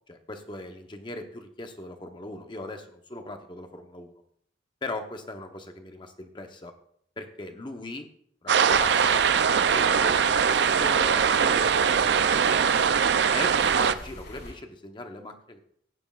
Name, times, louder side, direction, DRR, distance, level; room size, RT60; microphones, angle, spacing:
voice 1, 0.1-4.1 4.8-6.7 7.2-8.1 8.4-9.3 9.6-12.3 13.3-15.6, left 2 dB, 25° left, 5 dB, 0.8 m, -39 dB
sound 1, 8.5-13.9, right 7 dB, 65° right, 0.4 m, -22 dB
sound 2, 8.7-14.5, left 1 dB, 65° left, 4.5 m, -44 dB
15.5 x 9.5 x 2.4 m, 0.67 s
head